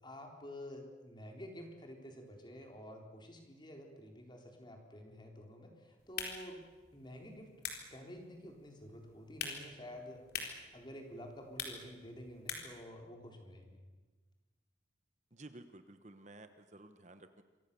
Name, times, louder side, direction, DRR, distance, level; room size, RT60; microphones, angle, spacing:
voice 1, 0.0-6.6 6.9-10.2 10.7-13.8, equal, 25° left, 2 dB, 4.0 m, -50 dB
sound 1, 6.0-12.9, left 6 dB, 50° left, 4.2 m, -46 dB
voice 2, 15.3-17.4, right 2 dB, 40° right, 9 dB, 1.1 m, -54 dB
27.5 x 24.0 x 7.0 m, 1.3 s
head